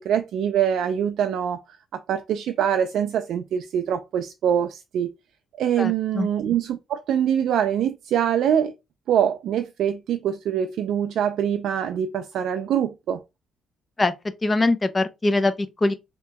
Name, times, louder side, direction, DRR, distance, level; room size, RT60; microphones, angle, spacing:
voice 1, 0.0-1.6 1.9-5.1 5.6-8.7 9.1-13.2, right 9 dB, 75° right, 0.3 m, -24 dB
voice 2, 5.8-6.3 14.0-14.1 14.4-15.9, left 2 dB, 25° left, 0.5 m, -22 dB
2.9 x 2.7 x 3.4 m
cardioid pair, 90°, 0 cm